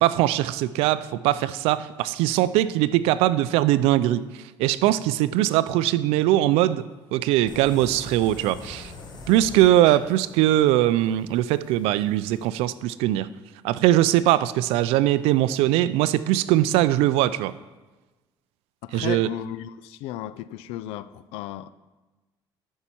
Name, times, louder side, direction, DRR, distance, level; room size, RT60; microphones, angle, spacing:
voice 1, 0.0-4.2 4.6-6.8 7.1-8.9 9.3-13.3 13.6-17.5 18.9-19.3, right 14 dB, 90° right, 16 dB, 0.4 m, -21 dB
sound 1, 7.5-12.5, left 3 dB, 45° left, 1.3 m, -43 dB
voice 2, 18.8-21.7, left 13 dB, 90° left, 17 dB, 0.4 m, -35 dB
13.0 x 5.5 x 4.4 m, 1.2 s
cardioid pair, 115°, 10 cm